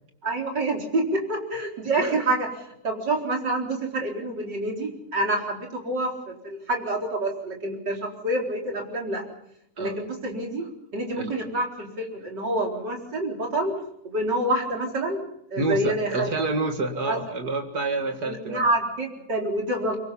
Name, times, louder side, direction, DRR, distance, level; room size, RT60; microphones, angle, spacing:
voice 1, 0.2-2.5 2.8-9.3 9.8-13.8 14.0-15.2 15.5-16.3 17.0-17.2 18.2-20.0, right 1 dB, 85° right, 1 dB, 4.9 m, -27 dB
voice 2, 15.6-18.7, right 2 dB, 65° right, 5 dB, 2.6 m, -28 dB
25.0 x 22.5 x 5.6 m, 0.75 s
omnidirectional pair, 1.8 m